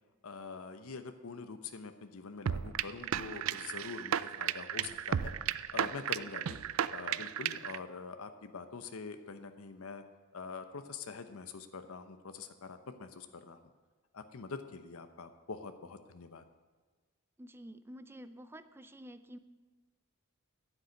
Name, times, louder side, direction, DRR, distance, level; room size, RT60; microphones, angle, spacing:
voice 1, 0.2-6.6 6.9-10.0 10.3-13.6 14.1-16.4, left 4 dB, 70° left, 8 dB, 0.8 m, -45 dB
sound 1, 2.5-7.8, right 9 dB, 65° right, 0.4 m, -34 dB
voice 2, 17.4-19.4, equal, 10° right, 11 dB, 0.5 m, -49 dB
12.0 x 6.7 x 9.8 m, 1.4 s
head